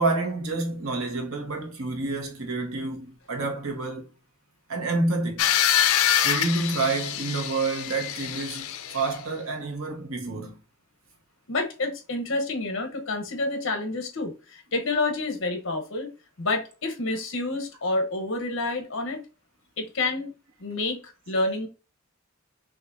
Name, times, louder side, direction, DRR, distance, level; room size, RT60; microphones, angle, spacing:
voice 1, 0.0-4.1 4.7-5.5 6.2-10.6, right 3 dB, 75° right, 1.2 m, -28 dB
sound 1, 5.4-9.2, left 10 dB, 80° left, 0.4 m, -25 dB
voice 2, 11.5-16.1 16.4-19.2 19.8-20.3 20.6-21.7, left 2 dB, 60° left, 1.0 m, -28 dB
5.9 x 2.6 x 2.6 m
head